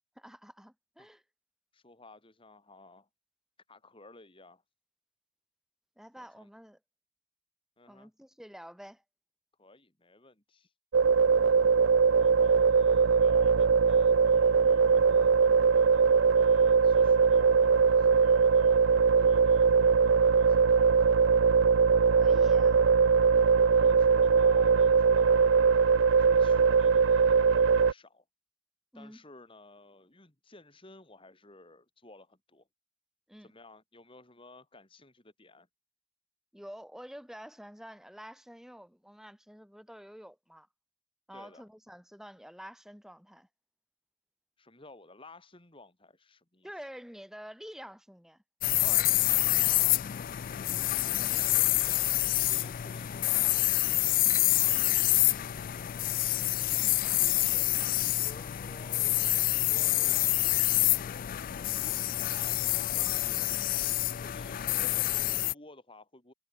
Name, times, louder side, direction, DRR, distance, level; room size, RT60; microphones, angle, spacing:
voice 1, 0.2-1.2 6.0-6.8 7.9-9.0 22.1-22.8 28.9-29.2 33.3-33.5 36.5-40.7 41.3-43.5 46.6-48.4 48.8-49.1 51.1-51.4 56.7-57.0, equal, ahead, 5.8 m, -48 dB
voice 2, 1.7-3.1 3.7-4.6 6.2-6.5 7.8-8.1 9.6-10.7 12.2-21.1 23.0-23.5 23.7-25.6 26.2-28.2 28.9-32.7 33.4-35.7 41.3-41.6 44.6-46.7 49.4-50.3 51.0-54.2 54.5-56.1 57.5-60.6 62.2-63.7 64.1-66.3, left 2 dB, 25° left, 2.9 m, -54 dB
sound 1, 10.9-27.9, right 5 dB, 70° right, 0.5 m, -22 dB
sound 2, 48.6-65.5, left 16 dB, 45° left, 0.3 m, -27 dB
head